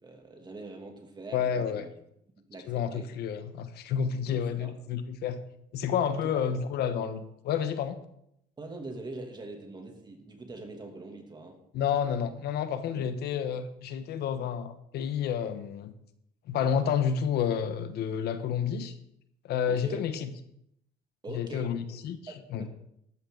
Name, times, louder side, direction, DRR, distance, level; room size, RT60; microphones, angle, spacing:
voice 1, 0.0-1.9 2.4-3.1 4.3-4.7 6.2-6.4 8.6-11.6 13.0-13.1 19.7-20.1 21.2-22.0 22.3-22.7, right 2 dB, 25° right, 3 dB, 2.8 m, -43 dB
voice 2, 1.3-1.8 2.7-5.4 5.7-8.0 11.7-15.9 16.5-18.9 19.4-20.3 21.3-22.7, left 8 dB, 75° left, 10 dB, 1.2 m, -30 dB
13.5 x 13.0 x 4.0 m, 0.75 s
cardioid pair, 110°, 17 cm